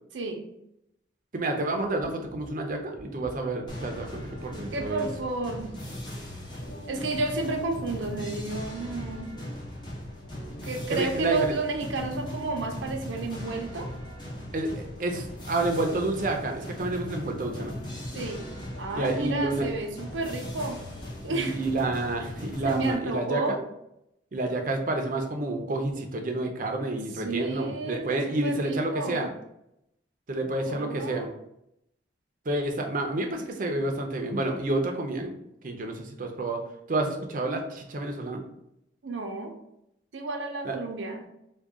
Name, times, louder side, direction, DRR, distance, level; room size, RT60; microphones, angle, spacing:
voice 1, 0.1-0.5 4.7-5.7 6.9-9.4 10.6-13.9 18.1-18.4 18.8-20.8 21.2-21.6 22.6-23.6 27.2-29.3 30.7-31.3 39.0-39.5 40.1-41.3, right 3 dB, 85° right, 3 dB, 0.6 m, -31 dB
voice 2, 1.3-5.1 10.9-11.6 14.5-17.7 19.0-19.7 21.3-23.6 24.3-29.3 30.3-31.3 32.5-35.4 35.6-36.6 36.9-38.4 40.6-40.8, right 2 dB, 45° right, 3 dB, 0.5 m, -29 dB
sound 1, 1.6-21.5, right 1 dB, 75° left, 1.2 m, -48 dB
sound 2, 3.7-23.0, left 1 dB, 25° left, 0.7 m, -39 dB
3.6 x 2.3 x 3.5 m, 0.81 s
head